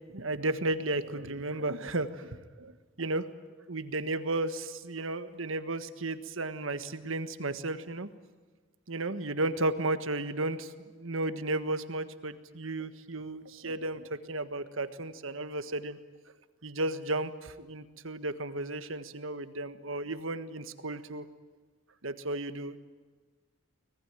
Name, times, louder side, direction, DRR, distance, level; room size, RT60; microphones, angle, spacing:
voice 1, 0.1-3.3 3.7-8.1 8.9-16.0 16.6-21.2 22.0-22.8, right 2 dB, 70° right, 11 dB, 1.5 m, -34 dB
25.0 x 19.5 x 9.1 m, 1.4 s
head